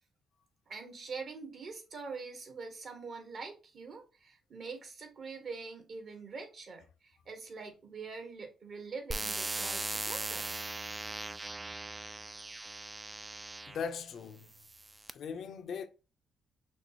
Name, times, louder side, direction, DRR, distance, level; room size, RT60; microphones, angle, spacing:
voice 1, 0.7-10.5, right 4 dB, 55° right, 1.5 m, -44 dB
sound 1, 9.1-13.8 14.5-15.1, right 2 dB, 20° right, 0.3 m, -39 dB
voice 2, 13.7-14.5 15.1-15.9, left 6 dB, 65° left, 0.6 m, -39 dB
6.1 x 2.4 x 2.9 m
cardioid pair, 90°, 0 cm